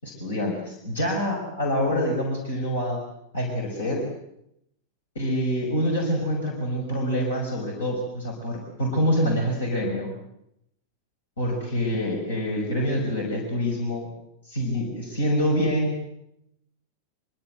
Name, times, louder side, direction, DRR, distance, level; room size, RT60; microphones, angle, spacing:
voice 1, 0.0-3.0 3.3-4.0 5.2-10.1 11.4-14.1 14.5-16.0, equal, 70° left, 1 dB, 5.7 m, -26 dB
25.0 x 23.5 x 7.9 m, 0.80 s
figure-of-eight pair, 90°, 0 cm